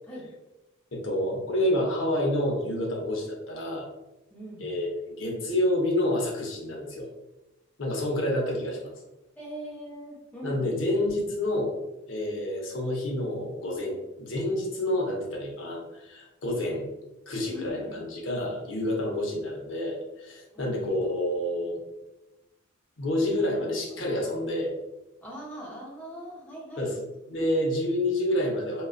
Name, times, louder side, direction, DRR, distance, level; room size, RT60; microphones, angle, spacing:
voice 1, 0.9-3.9 4.6-7.1 7.8-8.9 10.4-11.7 12.1-16.9 17.3-21.8 23.0-24.7 26.8-27.0 27.3-28.9, left 1 dB, 70° left, -1 dB, 0.6 m, -28 dB
voice 2, 4.3-4.7 9.3-10.6 17.5-18.0 20.5-21.0 23.6-23.7 23.9-24.0 25.2-27.0, right 1 dB, 10° left, -5 dB, 0.6 m, -41 dB
2.5 x 2.2 x 2.3 m, 0.99 s
head